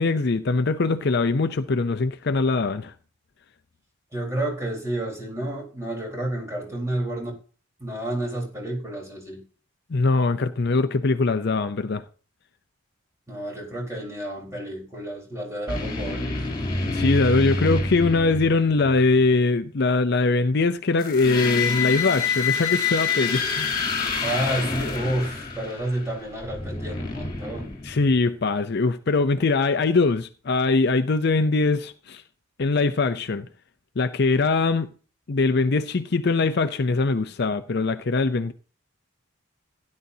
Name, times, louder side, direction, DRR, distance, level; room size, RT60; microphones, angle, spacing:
voice 1, 0.0-2.9 9.9-12.0 16.9-23.8 27.8-32.2 32.6-33.5 34.0-34.9 35.3-38.5, left 3 dB, 50° left, 0.6 m, -22 dB
voice 2, 4.1-7.3 7.8-9.4 10.0-10.1 13.3-16.5 24.2-27.8, right 1 dB, 15° right, 4.1 m, -30 dB
sound 1, 15.7-19.0 21.0-28.3, left 4 dB, 25° left, 3.6 m, -27 dB
16.5 x 10.5 x 2.8 m
head